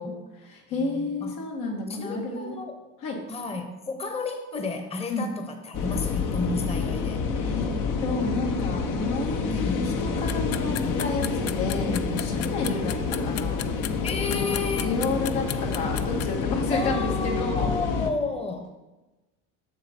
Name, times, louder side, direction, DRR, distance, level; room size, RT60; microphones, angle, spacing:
voice 1, 0.0-2.5 3.0-3.2 5.1-5.3 7.4-7.7 8.0-13.0 13.2-13.7 14.3-17.7, left 3 dB, 80° left, 0 dB, 1.8 m, -31 dB
voice 2, 0.8-1.3 1.9-2.8 3.3-7.2 9.4-10.0 10.6-11.0 11.8-12.2 12.6-12.8 14.0-15.0 16.7-18.7, left 3 dB, 15° left, 5 dB, 0.9 m, -32 dB
sound 1, 5.7-18.1, left 5 dB, 60° left, 1.0 m, -28 dB
sound 2, 10.3-16.3, left 12 dB, 45° left, 0.4 m, -34 dB
6.6 x 6.6 x 4.4 m, 1.1 s
supercardioid pair, 90°, 35 cm